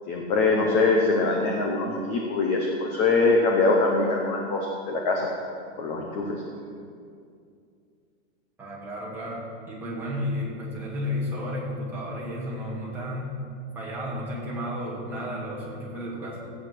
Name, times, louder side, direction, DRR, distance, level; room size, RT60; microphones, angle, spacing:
voice 1, 0.1-5.3 5.8-6.4, left 3 dB, 15° left, 0 dB, 0.7 m, -23 dB
voice 2, 8.6-13.4 13.7-16.4, left 1 dB, 5° right, -7 dB, 2.1 m, -32 dB
14.5 x 8.8 x 6.1 m, 2.3 s
supercardioid pair, 180°, 36 cm